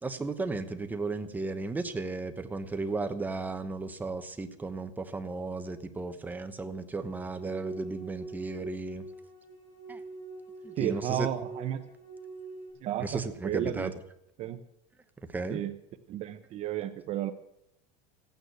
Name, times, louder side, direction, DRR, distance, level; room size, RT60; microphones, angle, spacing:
voice 1, 0.0-9.1 9.9-10.0 10.6-11.3 13.0-13.9 15.3-15.6, right 3 dB, 10° right, 8 dB, 1.0 m, -35 dB
sound 1, 6.9-12.7, right 3 dB, 25° left, 5.5 m, -43 dB
voice 2, 10.8-11.8 12.8-13.9 14.4-14.6 15.5-15.8 16.1-17.3, right 11 dB, 40° right, 10 dB, 0.9 m, -32 dB
14.5 x 9.1 x 8.0 m, 0.80 s
cardioid pair, 155°, 17 cm